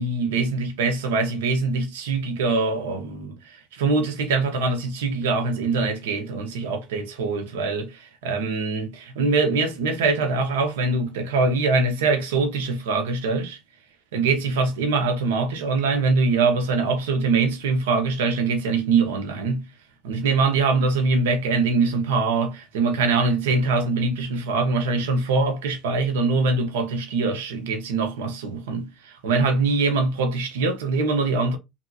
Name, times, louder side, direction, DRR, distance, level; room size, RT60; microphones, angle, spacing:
voice 1, 0.0-13.6 14.1-19.6 20.0-31.6, right 3 dB, 85° right, 0.6 m, -23 dB
2.7 x 2.6 x 2.3 m
hypercardioid pair, 75°, 0 cm